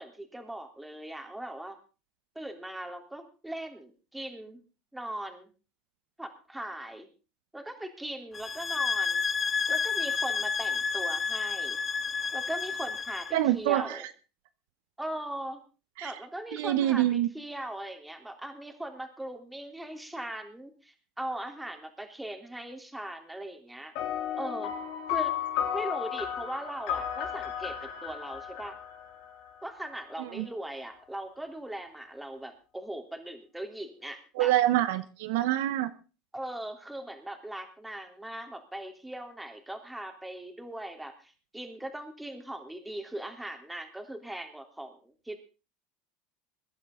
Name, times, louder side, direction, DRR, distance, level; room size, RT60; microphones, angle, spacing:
voice 1, 0.0-1.8 2.3-4.6 4.9-5.5 6.2-7.1 7.5-9.2 9.7-11.8 12.3-14.0 15.0-15.6 16.0-23.9 24.4-24.7 25.1-25.3 25.7-28.8 29.6-34.5 36.3-45.4, right 1 dB, 5° right, 5 dB, 3.4 m, -39 dB
sound 1, 8.3-13.4, left 5 dB, 25° left, 1.8 m, -30 dB
voice 2, 13.3-14.0 16.0-16.1 16.5-17.3 30.2-30.4 34.4-35.9, right 14 dB, 75° right, 12 dB, 1.0 m, -26 dB
sound 2, 24.0-29.7, left 9 dB, 65° left, 3.3 m, -34 dB
22.5 x 10.5 x 3.9 m, 0.33 s
hypercardioid pair, 85°, 0 cm